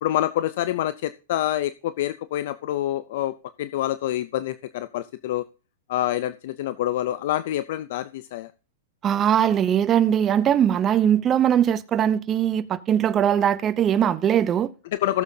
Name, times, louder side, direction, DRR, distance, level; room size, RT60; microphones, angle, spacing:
voice 1, 0.0-5.4 5.9-8.5 14.9-15.2, left 13 dB, 60° left, 0.5 m, -27 dB
voice 2, 9.0-14.7, right 9 dB, 25° right, 0.6 m, -21 dB
18.0 x 7.0 x 2.8 m
hypercardioid pair, 135°, 0 cm